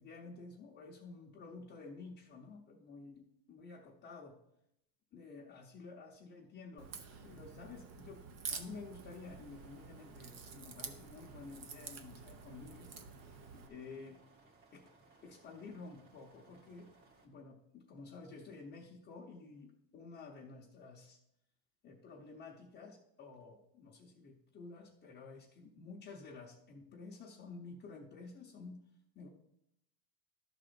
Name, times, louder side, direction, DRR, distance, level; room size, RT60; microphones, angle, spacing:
voice 1, 0.0-4.4 5.1-6.9 7.2-13.0 13.5-14.2 14.7-14.9 15.2-16.9 17.2-21.2 21.8-28.8 29.1-29.3, left 4 dB, 20° left, -3 dB, 0.9 m, -51 dB
Crack, 6.8-13.7, right 5 dB, 35° right, 0.7 m, -49 dB
sound 1, 8.9-17.3, right 3 dB, 55° right, 2.0 m, -65 dB
11.5 x 3.9 x 6.8 m, 0.79 s
cardioid pair, 165°, 49 cm